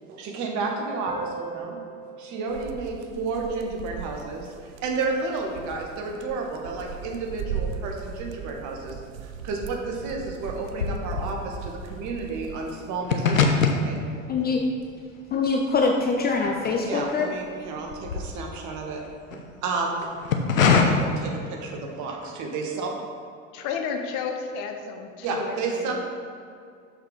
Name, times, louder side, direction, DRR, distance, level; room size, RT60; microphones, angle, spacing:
voice 1, 0.1-1.8 2.1-9.0 9.2-13.4 13.8-14.0 16.8-19.0 19.3-20.1 20.6-22.9 25.2-25.9, right 4 dB, 45° right, 1 dB, 1.3 m, -31 dB
sound 1, 1.1-4.2, right 5 dB, 10° right, 1.0 m, -41 dB
sound 2, 2.5-13.0, right 7 dB, 75° right, 0.6 m, -38 dB
sound 3, 8.4-8.8 9.0-17.3 17.7-19.4 20.0-20.8, left 6 dB, 80° left, 0.7 m, -26 dB
voice 2, 14.3-14.6 15.3-17.3, left 4 dB, 25° left, 1 dB, 0.6 m, -24 dB
voice 3, 23.5-25.9, left 6 dB, 45° left, 5 dB, 0.9 m, -32 dB
6.4 x 4.9 x 5.3 m, 2.4 s
figure-of-eight pair, 70°, 41 cm